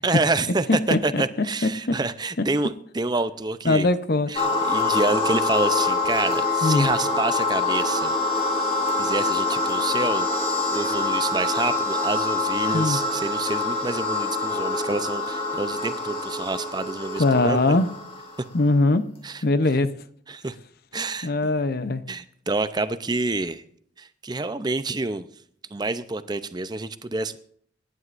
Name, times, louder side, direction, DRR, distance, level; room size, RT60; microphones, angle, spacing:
voice 1, 0.0-3.9 4.3-8.2 9.0-17.8 19.2-19.4 20.3-20.6 20.9-21.3 22.1-23.6 24.0-25.3 25.7-27.4, right 3 dB, 20° right, 0.6 m, -28 dB
voice 2, 0.7-1.2 1.6-1.7 3.6-4.3 6.6-6.9 12.7-13.0 17.2-17.9 18.5-19.0 19.4-19.9 21.2-22.0, left 2 dB, 50° left, 0.7 m, -21 dB
sound 1, 4.4-18.5, left 3 dB, 30° left, 2.2 m, -25 dB
27.0 x 11.0 x 2.6 m
head